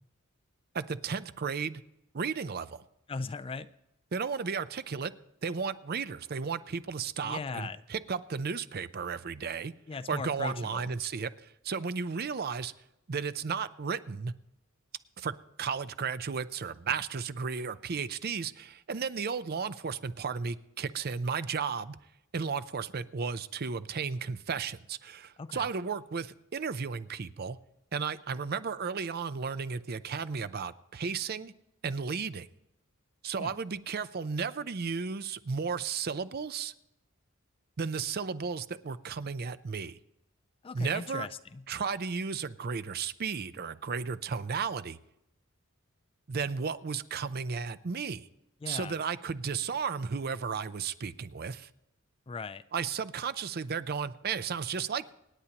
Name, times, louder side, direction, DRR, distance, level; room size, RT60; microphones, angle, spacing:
voice 1, 0.7-1.8 2.1-2.8 4.1-5.1 5.4-9.7 10.1-12.7 13.1-14.3 15.2-22.0 22.3-27.6 27.9-31.5 31.8-32.5 33.2-36.7 37.8-40.0 40.7-41.3 41.7-45.0 46.3-48.3 48.7-51.7 52.7-55.1, right 5 dB, 50° right, 0.5 m, -34 dB
voice 2, 3.1-3.7 7.2-7.8 9.9-10.9 25.4-25.7 33.4-33.5 40.6-41.6 48.6-48.9 52.3-52.6, left 4 dB, 25° left, 0.4 m, -38 dB
26.0 x 9.6 x 2.9 m
head